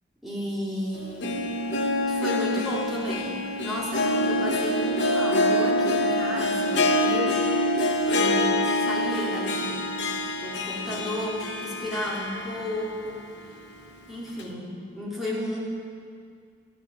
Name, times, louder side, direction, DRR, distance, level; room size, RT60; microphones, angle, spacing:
voice 1, 0.2-1.4 1.9-7.4 8.0-13.3 14.1-15.6, left 1 dB, ahead, -7 dB, 3.3 m, -33 dB
Harp, 1.0-13.1 13.4-13.5 14.4-14.5, left 1 dB, 80° left, 1.1 m, -26 dB
14.0 x 10.5 x 7.1 m, 2.2 s
head